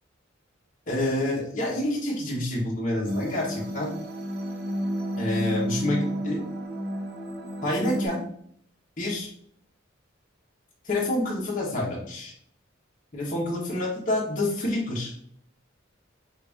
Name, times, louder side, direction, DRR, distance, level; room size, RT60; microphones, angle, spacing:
voice 1, 0.9-3.9 5.2-6.4 7.6-8.2 9.0-9.3 10.8-12.3 13.1-15.1, left 1 dB, 40° left, -4 dB, 1.4 m, -28 dB
sound 1, 3.1-8.1, equal, 55° right, 1.2 m, -31 dB
5.4 x 2.7 x 3.5 m, 0.63 s
head